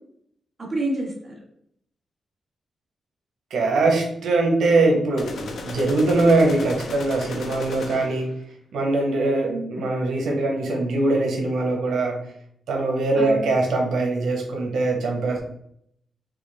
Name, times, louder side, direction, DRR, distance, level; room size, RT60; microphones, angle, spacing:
voice 1, 0.6-1.3 9.4-9.8 13.1-13.5, right 1 dB, 25° right, -4 dB, 1.5 m, -29 dB
voice 2, 3.5-8.4 8.7-12.2 12.7-15.4, right 2 dB, 90° right, 1 dB, 0.9 m, -22 dB
sound 1, 5.2-8.3, left 3 dB, 70° left, 0.7 m, -35 dB
5.9 x 2.4 x 3.3 m, 0.70 s
wide cardioid pair, 155°, 0 cm